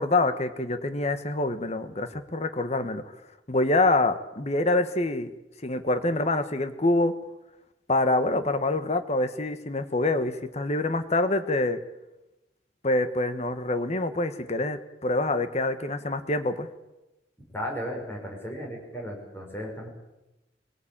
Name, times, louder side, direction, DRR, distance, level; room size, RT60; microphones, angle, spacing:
voice 1, 0.0-3.0 3.5-5.3 5.6-7.1 7.9-11.8 12.8-16.7, left 2 dB, 35° left, 9 dB, 1.3 m, -26 dB
voice 2, 17.5-19.9, equal, 15° left, 0 dB, 6.1 m, -35 dB
23.5 x 18.0 x 8.8 m, 0.98 s
head